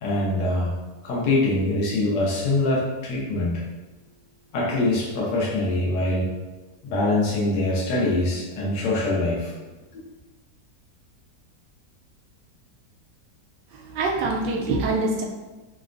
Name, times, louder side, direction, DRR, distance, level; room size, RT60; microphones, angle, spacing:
voice 1, 0.0-0.7 1.0-3.6 4.5-6.3 6.8-9.5 9.9-10.0, left 2 dB, 80° left, -4 dB, 1.4 m, -24 dB
voice 2, 13.7-15.2, right 3 dB, 80° right, 1 dB, 1.2 m, -25 dB
4.8 x 2.1 x 2.5 m, 1.2 s
omnidirectional pair, 1.8 m